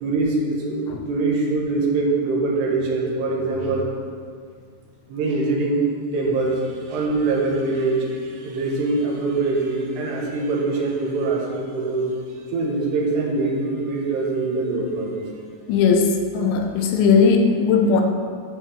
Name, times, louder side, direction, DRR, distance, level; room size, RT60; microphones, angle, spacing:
voice 1, 0.0-3.9 5.1-5.8 6.1-12.1 12.5-15.2, right 3 dB, 75° right, -2 dB, 3.4 m, -23 dB
voice 2, 15.7-18.0, left 5 dB, 90° left, 4 dB, 3.2 m, -18 dB
11.0 x 4.9 x 7.2 m, 2.1 s
omnidirectional pair, 5.1 m